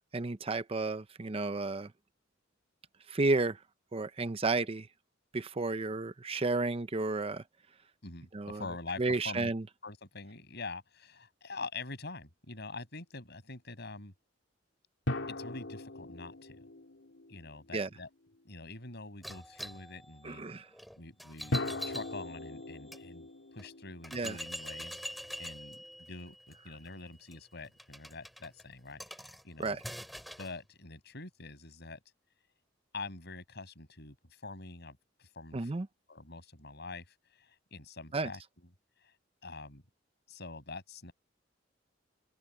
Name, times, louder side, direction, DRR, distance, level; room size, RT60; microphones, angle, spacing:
voice 1, 0.1-1.9 3.1-3.6 3.9-4.9 5.3-7.4 8.3-8.6 9.0-9.6 17.7-17.9 20.2-20.7 24.1-24.4 29.6-29.8 35.5-35.9 38.1-38.3, right 3 dB, 30° right, 0.6 m, -32 dB
voice 2, 8.0-9.5 9.8-14.1 15.3-16.7 17.3-18.1 18.4-20.4 21.0-21.6 21.8-25.8 26.1-29.8 30.4-32.0 32.9-35.7 36.1-38.7 39.0-39.1 39.4-39.8 40.3-41.1, left 3 dB, 60° left, 7.8 m, -45 dB
sound 1, 15.1-17.9 21.5-24.9, left 1 dB, 85° left, 2.9 m, -39 dB
sound 2, 19.2-23.0 23.6-23.7 24.0-30.6, equal, ahead, 7.1 m, -45 dB
open air
head